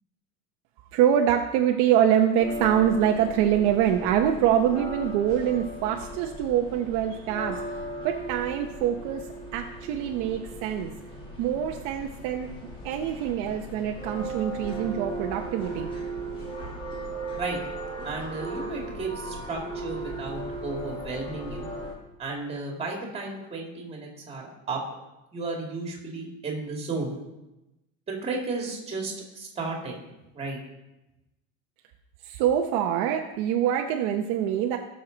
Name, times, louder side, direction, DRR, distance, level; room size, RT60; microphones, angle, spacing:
voice 1, 0.9-7.6 8.0-9.3 9.5-10.9 11.4-12.5 12.8-15.9 32.2-34.8, right 9 dB, 55° right, 3 dB, 0.8 m, -24 dB
sound 1, 2.4-21.9, right 2 dB, 15° left, 1.8 m, -37 dB
voice 2, 18.0-21.7 22.2-24.8 25.3-27.2 28.1-30.0 30.3-30.6, right 3 dB, 15° right, 0 dB, 2.1 m, -33 dB
17.5 x 6.6 x 3.9 m, 0.97 s
cardioid pair, 175°, 35 cm